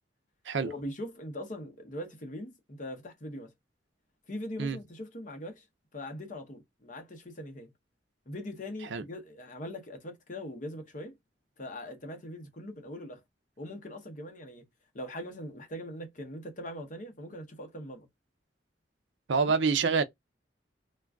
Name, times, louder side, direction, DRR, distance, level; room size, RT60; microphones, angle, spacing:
voice 1, 0.6-3.5 4.3-5.6 5.9-7.7 8.3-11.1 11.6-13.2 13.6-14.6 14.9-18.1 19.3-19.5, left 1 dB, 45° left, 0.8 m, -41 dB
voice 2, 19.3-20.0, right 5 dB, 80° right, 0.5 m, -26 dB
2.4 x 2.2 x 3.3 m
head